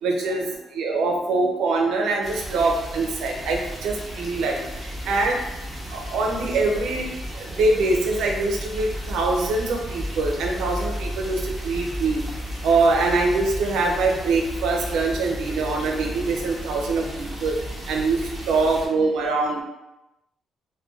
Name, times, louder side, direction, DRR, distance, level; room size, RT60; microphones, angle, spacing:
voice 1, 0.0-5.4 5.9-7.1 7.3-12.2 12.6-17.6 17.9-19.6, right 3 dB, 85° right, 1 dB, 0.5 m, -23 dB
sound 1, 2.2-18.9, equal, 5° right, 0.9 m, -34 dB
3.7 x 2.2 x 2.4 m, 0.97 s
cardioid pair, 90°, 0 cm